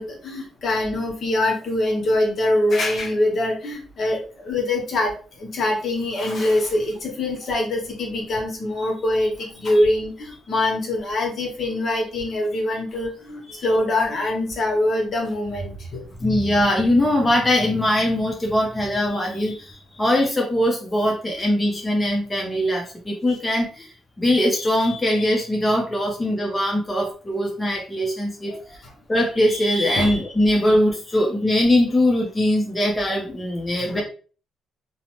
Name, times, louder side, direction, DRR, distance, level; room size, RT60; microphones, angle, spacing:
voice 1, 0.0-16.0 28.5-28.6 30.0-30.1 33.8-34.0, left 1 dB, 55° left, 0 dB, 1.1 m, -24 dB
voice 2, 16.2-28.8 29.1-34.0, left 1 dB, 15° left, -1 dB, 0.6 m, -21 dB
2.6 x 2.1 x 3.0 m, 0.39 s
cardioid pair, 90°, 0 cm